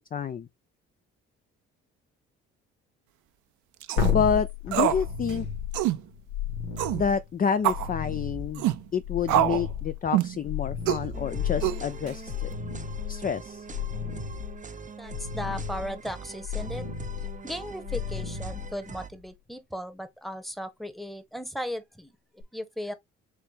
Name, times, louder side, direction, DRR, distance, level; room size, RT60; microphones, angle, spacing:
voice 1, 0.1-0.5 4.1-5.5 6.9-12.5 13.1-13.7, left 7 dB, 30° left, 0.4 m, -28 dB
sound 1, 3.8-4.1 4.7-5.0 5.3-5.4 5.7-6.0 6.8-7.0 7.6-7.9 8.6-8.8 9.3-9.7 10.1-10.4 10.9-11.1 11.6-12.1, right 13 dB, 75° right, 0.6 m, -25 dB
sound 2, 4.0-19.3 22.4-22.5, left 7 dB, 90° left, 1.3 m, -33 dB
sound 3, 11.1-19.1, right 5 dB, 25° right, 0.7 m, -43 dB
voice 2, 15.0-16.9 17.4-22.9, equal, ahead, 1.0 m, -36 dB
4.5 x 3.3 x 3.4 m
hypercardioid pair, 55°, 30 cm